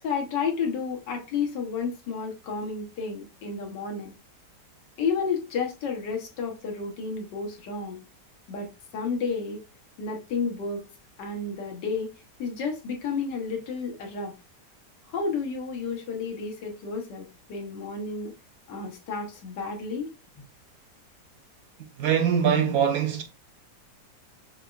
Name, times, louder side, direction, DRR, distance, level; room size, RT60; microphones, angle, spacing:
voice 1, 0.0-4.1 5.0-8.0 8.5-8.7 8.9-9.6 10.0-10.8 11.2-12.1 12.4-14.3 15.1-18.3 18.7-20.1, left 5 dB, 85° left, 1.6 m, -31 dB
voice 2, 22.0-23.2, right 8 dB, 70° right, 0.9 m, -22 dB
6.4 x 2.3 x 2.3 m
omnidirectional pair, 1.8 m